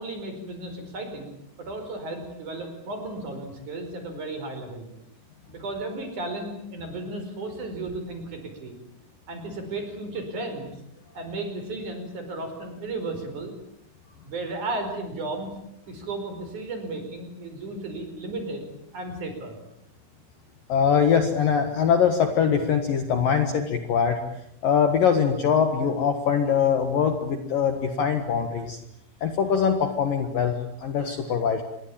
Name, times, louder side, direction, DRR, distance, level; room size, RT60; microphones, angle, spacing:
voice 1, 0.0-4.9 5.5-8.8 9.3-10.8 11.1-13.5 14.3-15.5 15.9-19.6, right 2 dB, 40° right, 6 dB, 6.0 m, -34 dB
voice 2, 20.7-24.2 24.6-28.8 29.2-31.6, left 7 dB, 60° left, 7 dB, 2.7 m, -22 dB
27.5 x 22.5 x 8.8 m, 0.77 s
omnidirectional pair, 5.6 m